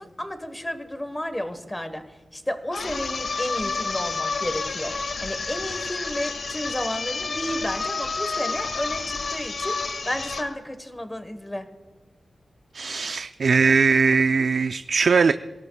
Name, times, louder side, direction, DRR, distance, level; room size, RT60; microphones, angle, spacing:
voice 1, 0.0-2.0 2.3-4.9 5.2-11.7, left 1 dB, 10° left, 1.2 m, -32 dB
sound 1, 2.7-10.5, left 4 dB, 65° left, 1.8 m, -30 dB
voice 2, 12.7-15.3, right 5 dB, 65° right, 0.4 m, -20 dB
27.5 x 17.5 x 2.3 m
wide cardioid pair, 145°, 0 cm